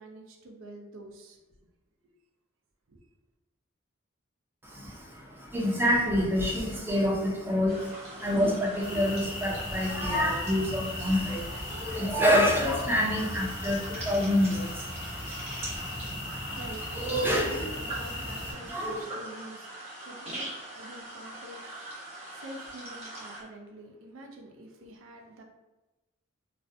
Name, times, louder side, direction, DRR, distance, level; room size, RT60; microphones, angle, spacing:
voice 1, 0.0-1.4 2.9-3.0 16.2-19.8 20.1-25.4, right 1 dB, 75° right, 2 dB, 0.4 m, -46 dB
voice 2, 4.6-17.7 18.2-19.1, equal, 10° right, -3 dB, 0.4 m, -28 dB
sound 1, 7.7-23.4, right 1 dB, 30° right, 0.8 m, -42 dB
sound 2, 8.8-18.5, left 1 dB, 45° left, 0.6 m, -38 dB
2.4 x 2.1 x 2.6 m, 1.1 s
head